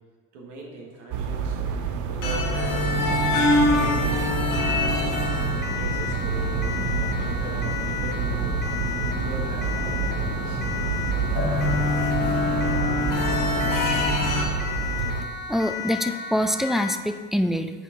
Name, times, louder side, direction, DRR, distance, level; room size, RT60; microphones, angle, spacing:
voice 1, 0.3-1.6 2.1-5.1 5.8-8.6 9.1-10.6, right 2 dB, 85° right, -1 dB, 1.4 m, -40 dB
sound 1, 1.1-15.3, right 6 dB, 55° right, 0.7 m, -28 dB
sound 2, 2.2-14.4, left 2 dB, 60° left, 1.5 m, -26 dB
Siren, 5.1-17.1, left 6 dB, 30° left, 0.7 m, -34 dB
voice 2, 15.5-17.7, equal, ahead, 8 dB, 0.3 m, -25 dB
8.8 x 4.4 x 3.7 m, 1.5 s
hypercardioid pair, 70°, 35 cm